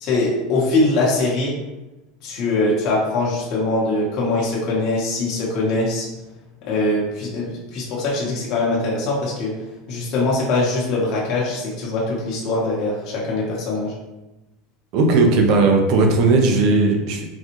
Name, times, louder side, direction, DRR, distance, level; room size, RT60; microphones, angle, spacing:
voice 1, 0.0-1.5 2.2-6.1 6.7-9.5 9.9-13.9, left 2 dB, 45° left, -5 dB, 1.0 m, -22 dB
voice 2, 14.9-17.3, right 3 dB, 55° right, 3 dB, 0.6 m, -16 dB
4.0 x 2.3 x 3.0 m, 1.0 s
supercardioid pair, 140°, 0 cm